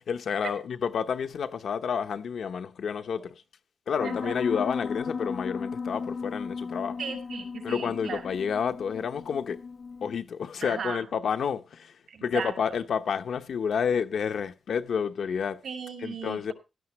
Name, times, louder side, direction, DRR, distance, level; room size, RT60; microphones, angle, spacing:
voice 1, 0.0-3.4 3.9-7.0 7.6-9.6 10.0-15.6 16.0-16.5, left 7 dB, 80° left, 0.8 m, -30 dB
Piano, 4.0-10.2, left 5 dB, 45° left, 0.5 m, -36 dB
voice 2, 4.0-4.4 7.0-8.2 10.6-11.0 12.1-12.6 15.6-16.5, right 6 dB, 85° right, 5.2 m, -36 dB
16.0 x 11.5 x 3.1 m
wide cardioid pair, 130°, 0 cm